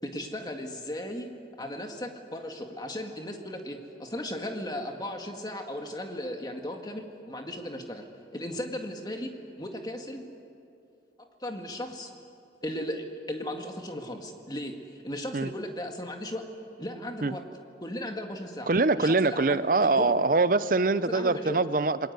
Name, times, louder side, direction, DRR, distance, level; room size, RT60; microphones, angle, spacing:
voice 1, 0.0-1.3 1.6-8.1 8.3-10.2 11.2-12.1 12.6-16.5 16.8-17.4 17.8-18.7 19.0-20.2 21.1-21.6, left 1 dB, 20° left, 3 dB, 1.9 m, -36 dB
voice 2, 18.7-22.0, right 3 dB, 45° right, 14 dB, 0.6 m, -24 dB
28.0 x 21.0 x 8.1 m, 2.5 s
head